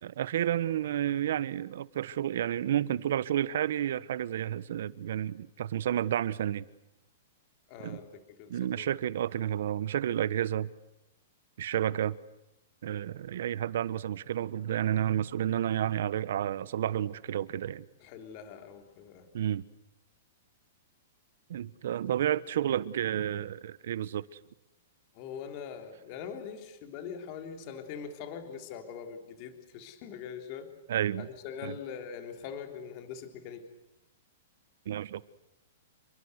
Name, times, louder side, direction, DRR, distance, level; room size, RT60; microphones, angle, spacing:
voice 1, 0.0-6.6 7.8-8.0 8.5-10.7 11.6-12.2 12.8-17.8 19.3-19.6 21.5-24.2 30.9-31.3 31.6-31.7 34.9-35.2, right 11 dB, 60° right, 1.2 m, -31 dB
voice 2, 7.7-8.9 18.0-19.3 25.1-30.7 31.2-33.6, left 7 dB, 30° left, 3.4 m, -42 dB
29.5 x 23.5 x 8.2 m
hypercardioid pair, 170°, 0 cm